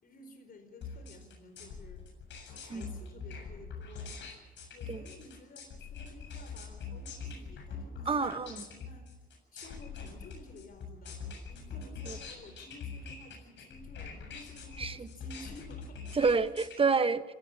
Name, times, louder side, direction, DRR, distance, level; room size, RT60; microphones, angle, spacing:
voice 1, 0.0-2.0 2.6-4.1 4.7-9.1 9.5-11.2 11.5-16.0, left 2 dB, 45° left, 6 dB, 4.6 m, -53 dB
sound 1, 0.8-16.8, left 5 dB, 65° left, 7.6 m, -44 dB
voice 2, 8.1-8.6 12.1-12.2 14.8-15.1 16.2-17.2, right 4 dB, 30° right, 11 dB, 1.2 m, -28 dB
25.5 x 15.5 x 7.4 m, 1.2 s
cardioid pair, 90°, 20 cm